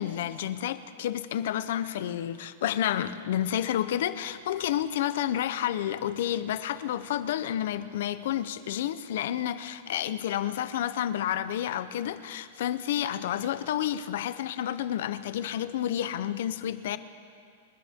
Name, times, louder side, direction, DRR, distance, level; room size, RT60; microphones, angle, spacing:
voice 1, 0.0-17.0, left 11 dB, 60° left, 13 dB, 0.7 m, -30 dB
27.0 x 10.5 x 3.6 m, 2.3 s
supercardioid pair, 170°, 0 cm